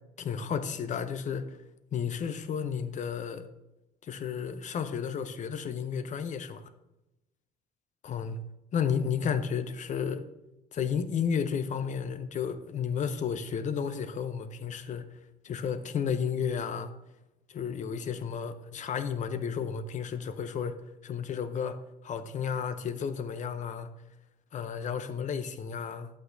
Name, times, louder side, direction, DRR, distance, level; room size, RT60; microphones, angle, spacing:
voice 1, 0.2-1.6 1.9-3.5 4.0-6.6 8.0-8.4 8.7-10.3 10.7-15.0 15.4-16.9 17.5-20.8 21.0-23.9 24.5-26.1, left 7 dB, 45° left, 11 dB, 0.7 m, -32 dB
9.7 x 8.3 x 2.6 m, 0.97 s
cardioid pair, 110°, 17 cm